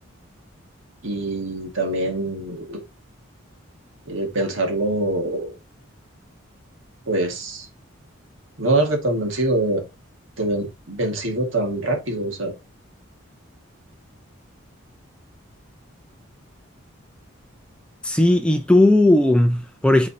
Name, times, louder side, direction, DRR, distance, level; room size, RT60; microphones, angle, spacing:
voice 1, 1.0-2.8 4.1-5.5 7.1-7.7 8.6-9.8 10.4-12.5, right 2 dB, 70° right, 1.9 m, -24 dB
voice 2, 18.0-20.1, left 1 dB, 5° left, 0.6 m, -16 dB
8.6 x 4.0 x 2.8 m
head